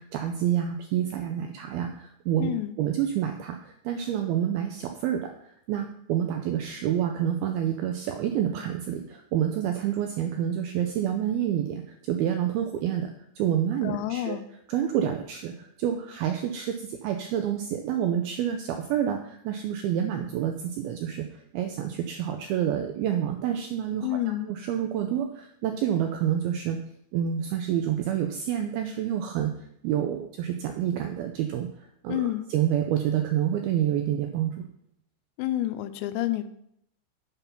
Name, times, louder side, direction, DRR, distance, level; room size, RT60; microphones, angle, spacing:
voice 1, 0.0-14.4 14.7-21.3 21.5-24.1 24.5-26.8 27.1-29.5 29.8-31.7 32.0-34.6, right 10 dB, 90° right, 5 dB, 2.2 m, -28 dB
voice 2, 2.4-2.7 13.8-14.4 24.0-24.5 32.1-32.5 35.4-36.4, left 14 dB, 85° left, 11 dB, 2.8 m, -29 dB
7.4 x 5.3 x 5.7 m, 0.72 s
omnidirectional pair, 5.0 m